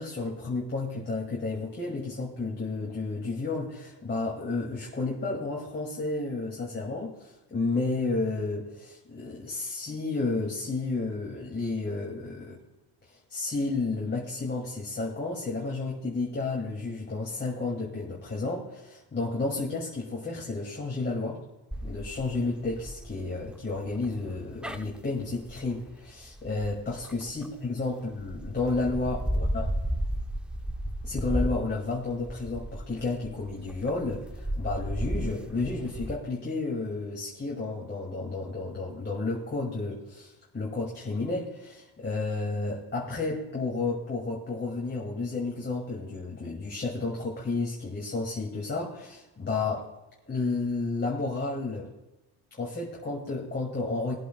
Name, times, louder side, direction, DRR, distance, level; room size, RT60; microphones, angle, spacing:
voice 1, 0.0-12.6 13.0-21.4 21.8-29.6 31.0-49.9 50.3-51.9 52.6-54.2, left 3 dB, 20° left, -3 dB, 2.4 m, -32 dB
sound 1, 21.7-27.7 28.2-36.1, equal, ahead, 0.4 m, -34 dB
23.5 x 8.3 x 2.3 m, 0.99 s
cardioid pair, 120°, 48 cm